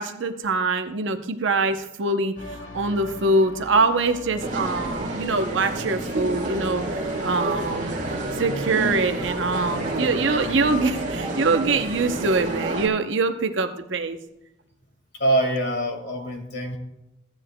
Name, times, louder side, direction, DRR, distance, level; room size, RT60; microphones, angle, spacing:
voice 1, 0.0-2.4 2.7-6.8 7.2-8.0 8.4-14.2, right 3 dB, 70° right, 7 dB, 0.7 m, -24 dB
sound 1, 2.4-11.1, left 1 dB, 90° left, 1.4 m, -39 dB
sound 2, 4.4-12.9, right 2 dB, 40° right, 1.4 m, -29 dB
voice 2, 15.2-16.8, right 1 dB, 55° left, 3 dB, 1.9 m, -24 dB
15.0 x 9.7 x 2.2 m, 0.89 s
head